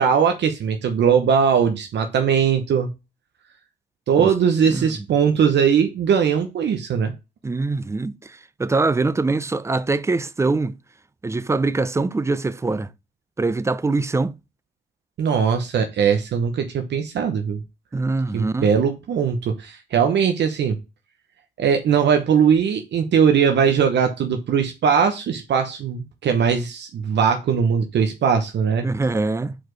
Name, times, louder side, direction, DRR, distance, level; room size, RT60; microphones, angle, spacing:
voice 1, 0.0-2.9 4.1-7.1 15.2-17.6 18.3-20.8 21.6-28.9, right 7 dB, 60° right, 0.9 m, -20 dB
voice 2, 7.4-10.8 11.2-12.9 13.4-14.4 17.9-18.7 28.8-29.6, right 3 dB, 15° right, 0.4 m, -23 dB
4.8 x 4.4 x 4.6 m
cardioid pair, 90°, 20 cm